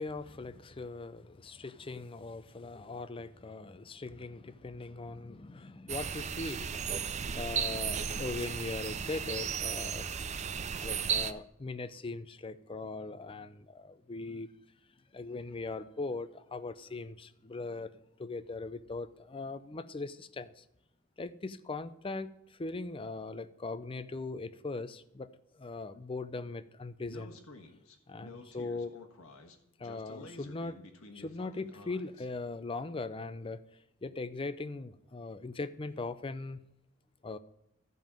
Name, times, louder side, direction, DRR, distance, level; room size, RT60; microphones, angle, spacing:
voice 1, 0.0-10.1 10.8-14.5 15.1-20.6 21.2-25.3 25.5-27.4 28.1-28.9 29.8-30.8 31.1-33.6 34.0-36.6 37.2-37.4, left 3 dB, 25° left, 0.5 m, -40 dB
sound 1, 5.9-11.3, right 7 dB, 30° right, 0.5 m, -35 dB
Speech, 27.1-32.3, left 2 dB, 75° left, 1.4 m, -51 dB
13.5 x 5.4 x 7.5 m
head